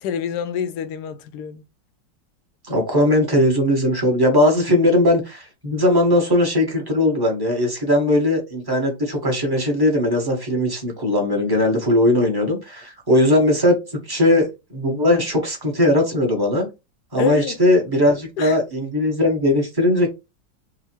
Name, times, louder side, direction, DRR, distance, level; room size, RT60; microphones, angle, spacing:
voice 1, 0.0-1.6 17.2-17.6 18.4-18.6, left 8 dB, 70° left, 1.0 m, -27 dB
voice 2, 2.6-16.7 17.1-20.1, left 1 dB, 15° right, 1.0 m, -19 dB
3.8 x 2.4 x 4.4 m
omnidirectional pair, 2.1 m